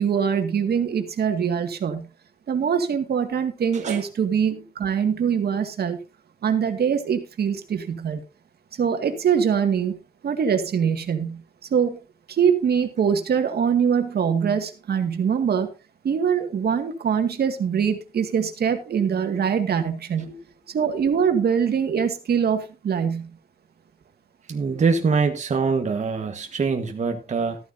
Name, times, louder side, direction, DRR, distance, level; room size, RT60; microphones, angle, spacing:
voice 1, 0.0-2.1 2.5-6.0 6.4-8.2 8.7-10.0 10.2-11.4 11.7-12.0 12.3-15.7 16.0-20.3 20.7-23.3, right 7 dB, 75° right, 7 dB, 2.0 m, -23 dB
voice 2, 24.5-27.6, right 5 dB, 45° right, 4 dB, 1.4 m, -24 dB
14.0 x 13.5 x 2.7 m, 0.29 s
wide cardioid pair, 145°, 16 cm